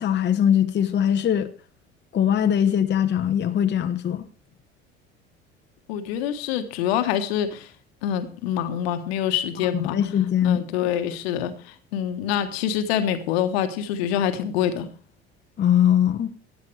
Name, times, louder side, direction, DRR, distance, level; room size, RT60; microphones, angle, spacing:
voice 1, 0.0-1.5 2.1-4.3 9.9-10.6 15.6-16.3, left 9 dB, 35° left, 0.9 m, -21 dB
voice 2, 5.9-7.7 8.0-10.0 10.4-14.9, left 9 dB, 70° left, 1.4 m, -26 dB
15.5 x 9.4 x 3.4 m
figure-of-eight pair, 65°, 33 cm